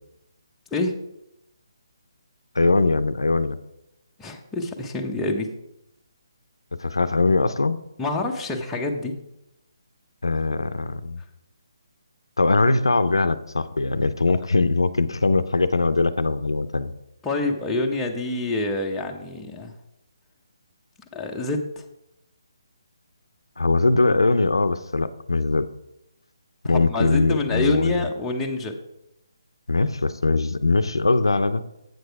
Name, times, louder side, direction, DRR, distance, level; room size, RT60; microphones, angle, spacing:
voice 1, 2.5-3.6 6.8-7.8 10.2-11.2 12.4-16.9 23.6-25.7 26.6-28.0 29.7-31.6, left 3 dB, 90° left, 11 dB, 0.5 m, -21 dB
voice 2, 4.2-5.5 8.0-9.1 17.2-19.7 21.1-21.9 26.6-28.8, left 2 dB, 10° left, 0 dB, 0.8 m, -26 dB
8.0 x 6.5 x 4.7 m, 0.86 s
figure-of-eight pair, 150°, 2 cm